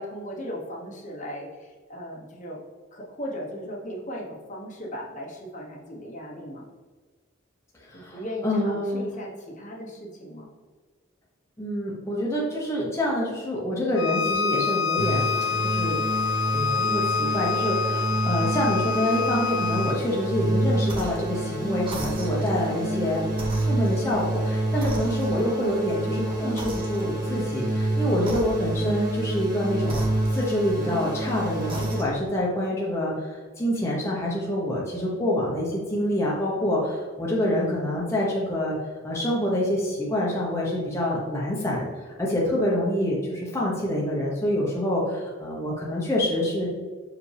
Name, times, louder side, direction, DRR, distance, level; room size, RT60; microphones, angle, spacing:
voice 1, 0.0-2.6 2.9-6.6 7.9-10.5 23.5-23.7, equal, 40° left, -2 dB, 1.1 m, -37 dB
voice 2, 8.4-9.1 11.6-15.4 15.6-16.0 16.5-23.2 23.7-30.0 30.3-38.8 39.0-41.9 42.2-46.7, left 1 dB, 15° left, -5 dB, 0.9 m, -26 dB
Bowed string instrument, 14.0-20.0, left 5 dB, 80° left, 0.4 m, -27 dB
sound 1, 15.0-32.0, right 1 dB, 45° right, 1.7 m, -28 dB
sound 2, 20.8-21.3 21.8-22.6 23.3-24.4 24.8-25.6 26.6-27.3 28.2-28.9 29.8-31.0 31.6-32.3, right 1 dB, 25° right, 1.0 m, -37 dB
6.0 x 4.8 x 3.4 m, 1.4 s
head